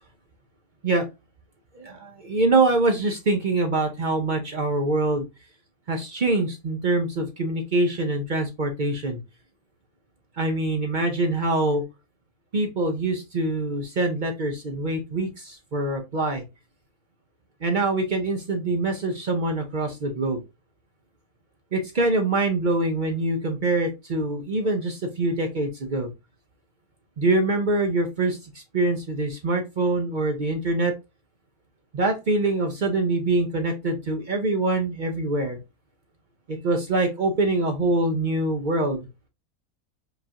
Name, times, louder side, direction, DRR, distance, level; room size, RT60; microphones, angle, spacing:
voice 1, 1.7-5.3 5.9-9.2 10.4-11.8 12.5-16.4 17.6-20.4 21.7-26.1 27.2-30.9 31.9-35.6 36.5-39.0, right 2 dB, 50° right, 4 dB, 0.6 m, -24 dB
4.8 x 2.4 x 2.7 m, 0.24 s
omnidirectional pair, 1.5 m